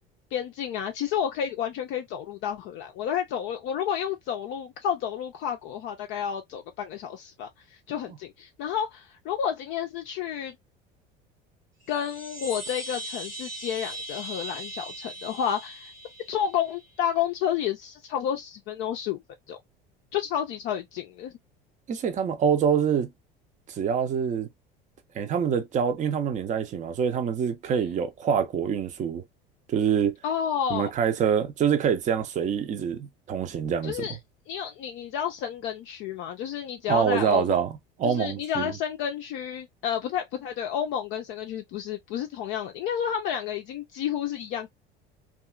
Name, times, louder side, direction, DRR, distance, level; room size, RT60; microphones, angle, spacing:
voice 1, 0.3-10.6 11.9-15.9 16.3-19.2 19.5-19.6 20.1-21.3 30.2-30.9 33.8-34.2 34.5-37.6 38.0-44.7, left 9 dB, 45° left, 0.5 m, -30 dB
sound 1, 11.8-16.9, right 1 dB, 90° right, 1.1 m, -39 dB
voice 2, 21.9-23.1 23.7-24.5 25.1-29.2 29.7-30.1 30.7-34.1 36.9-38.7, right 7 dB, 25° right, 0.5 m, -25 dB
2.7 x 2.4 x 2.3 m
figure-of-eight pair, 65°, 29 cm